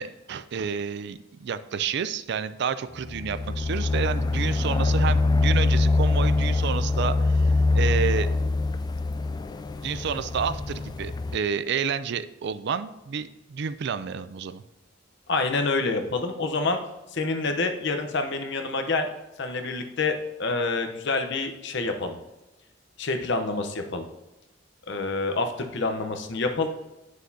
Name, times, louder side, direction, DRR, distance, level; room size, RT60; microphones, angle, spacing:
voice 1, 0.0-8.3 9.8-14.6, right 6 dB, 60° right, 13 dB, 0.4 m, -30 dB
sound 1, 3.0-11.4, left 3 dB, 20° left, 0.3 m, -24 dB
voice 2, 15.3-16.8 17.1-19.1 19.4-22.2 23.0-24.0 24.9-26.7, left 3 dB, 65° left, 6 dB, 0.9 m, -27 dB
9.4 x 6.4 x 2.8 m, 0.99 s
head